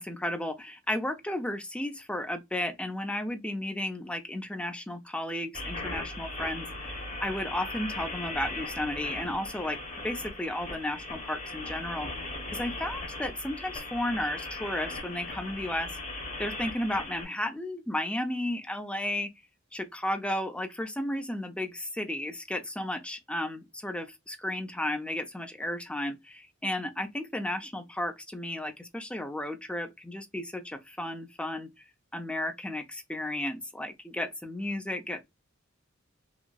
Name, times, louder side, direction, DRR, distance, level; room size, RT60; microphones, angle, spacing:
voice 1, 0.0-9.8 10.0-15.9 16.4-19.3 19.7-31.7 32.1-35.2, left 1 dB, 5° left, 0.4 m, -33 dB
sound 1, 5.5-17.2, left 2 dB, 35° left, 1.0 m, -38 dB
2.9 x 2.6 x 2.2 m
head